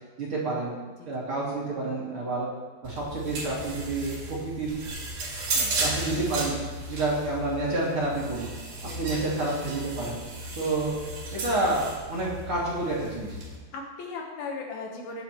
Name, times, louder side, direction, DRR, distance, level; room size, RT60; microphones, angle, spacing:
voice 1, 0.2-0.7 1.0-2.5 2.8-4.7 5.8-6.6 6.9-8.5 9.0-10.2 10.6-11.0 11.3-13.4, right 2 dB, 35° right, -7 dB, 2.9 m, -29 dB
sound 1, 2.8-13.6, right 2 dB, 55° right, 3.5 m, -34 dB
voice 2, 5.5-5.9 8.8-9.0 10.5-10.6 13.7-15.2, left 4 dB, 70° left, 1 dB, 2.9 m, -38 dB
18.5 x 8.4 x 3.1 m, 1.3 s
omnidirectional pair, 4.7 m